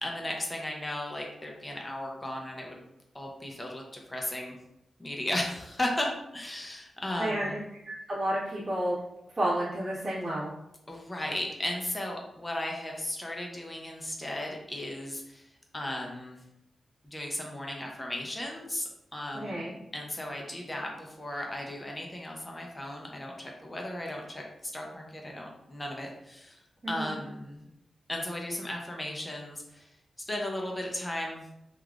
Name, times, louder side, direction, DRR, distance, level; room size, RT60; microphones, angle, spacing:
voice 1, 0.0-2.8 3.1-4.6 5.0-7.6 10.9-15.5 15.7-16.4 17.0-19.6 19.9-26.6 26.9-27.7 28.1-29.9 30.3-31.5, left 1 dB, 15° left, 0 dB, 0.4 m, -35 dB
voice 2, 7.2-8.9 9.3-10.5 19.3-19.7 26.8-27.1, right 1 dB, 30° right, -12 dB, 1.1 m, -31 dB
3.3 x 2.3 x 2.3 m, 0.86 s
wide cardioid pair, 125°, 0 cm